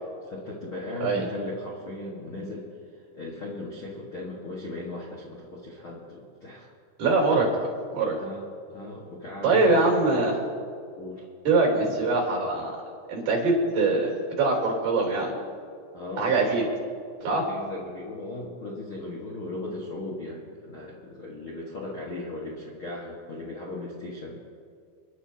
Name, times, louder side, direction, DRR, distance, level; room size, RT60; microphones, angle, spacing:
voice 1, 0.3-2.7 3.1-6.7 8.2-8.4 8.7-10.2 11.0-11.2 15.9-16.5 17.2-24.5, left 2 dB, 65° left, -5 dB, 1.2 m, -37 dB
voice 2, 7.0-7.5 7.9-8.2 9.4-10.4 11.4-12.7 13.1-15.4 16.2-16.6 17.2-17.4, right 3 dB, 45° right, -2 dB, 4.6 m, -23 dB
29.5 x 11.0 x 2.9 m, 2.3 s
omnidirectional pair, 5.2 m